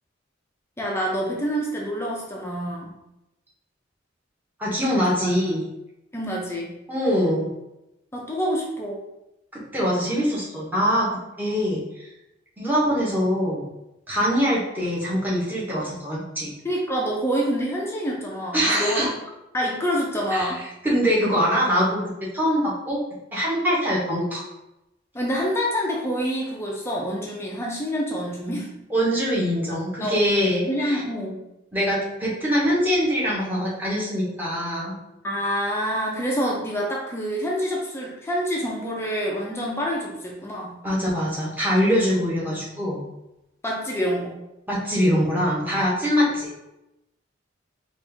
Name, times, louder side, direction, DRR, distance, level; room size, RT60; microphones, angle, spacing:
voice 1, 0.8-2.9 5.2-5.3 6.1-6.7 8.1-9.0 16.6-19.0 19.5-20.6 25.1-28.7 30.0-30.3 30.7-31.4 35.2-40.8 43.6-44.4, equal, 15° left, -2 dB, 0.6 m, -27 dB
voice 2, 4.6-5.6 6.9-7.5 9.5-11.1 11.4-11.8 12.6-13.6 14.1-16.5 18.5-19.1 20.3-20.5 20.8-22.0 22.3-23.0 23.3-24.4 28.9-31.0 31.7-34.9 40.8-43.0 44.7-46.5, equal, 10° right, -7 dB, 1.3 m, -23 dB
4.3 x 2.6 x 3.4 m, 0.89 s
head